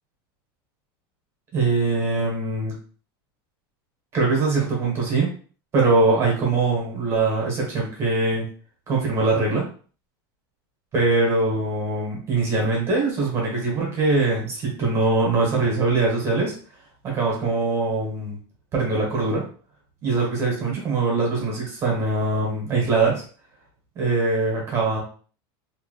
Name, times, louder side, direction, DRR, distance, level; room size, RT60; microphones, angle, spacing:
voice 1, 1.5-2.8 4.1-5.3 5.7-8.4 8.9-9.6 10.9-16.5 17.0-18.4 18.7-19.4 20.0-23.2 23.9-25.0, right 3 dB, 25° right, -2 dB, 1.3 m, -22 dB
3.3 x 2.9 x 2.3 m, 0.41 s
supercardioid pair, 170°, 12 cm